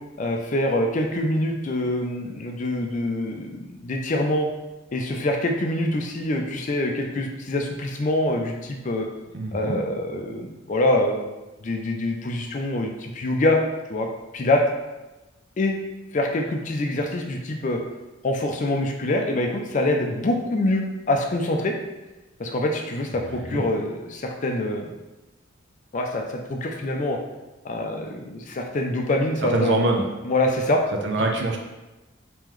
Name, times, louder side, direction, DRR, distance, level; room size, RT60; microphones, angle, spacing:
voice 1, 0.2-4.5 4.9-9.1 9.5-11.3 11.6-13.6 13.9-14.1 14.3-14.6 15.6-15.8 16.1-17.8 18.2-21.7 22.4-24.9 25.9-27.2 27.6-29.7 30.3-30.8, left 1 dB, 40° left, 2 dB, 0.4 m, -25 dB
voice 2, 9.3-9.8 23.2-23.6 29.5-30.1 31.0-31.6, right 2 dB, 60° right, 2 dB, 0.5 m, -24 dB
3.1 x 2.9 x 3.7 m, 1.1 s
head